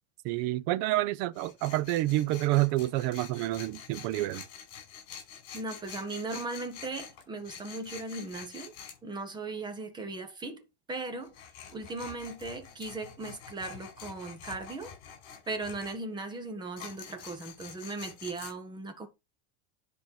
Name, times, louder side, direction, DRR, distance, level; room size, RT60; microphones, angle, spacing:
voice 1, 0.2-4.4, right 17 dB, 45° right, 0.6 m, -28 dB
Tools, 1.3-9.0 11.2-16.0 16.8-18.5, left 8 dB, 45° left, 5.4 m, -47 dB
voice 2, 5.5-8.7 9.0-10.6 10.9-11.3 11.7-14.9 15.5-19.1, right 3 dB, 10° right, 1.5 m, -38 dB
10.5 x 4.6 x 4.8 m
supercardioid pair, 160°, 35 cm